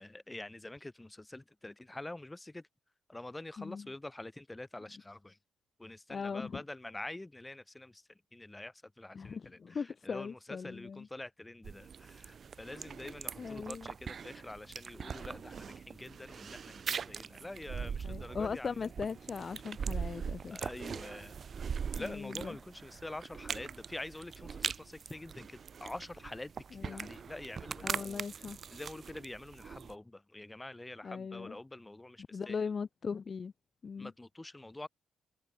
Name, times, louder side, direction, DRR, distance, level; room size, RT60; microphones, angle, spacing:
voice 1, 0.0-2.7 3.1-5.4 5.8-18.9 19.9-21.3 21.9-32.7 34.0-34.9, left 2 dB, 15° left, 4.6 m, -46 dB
voice 2, 6.1-6.6 9.1-11.1 12.7-13.1 13.4-13.9 18.0-20.6 22.0-22.6 26.8-27.1 27.8-28.6 31.0-31.6 32.3-33.5 33.8-34.1, left 5 dB, 40° left, 0.9 m, -39 dB
sound 1, 11.6-29.9, right 6 dB, 45° right, 4.0 m, -41 dB
cardioid pair, 90°, 0 cm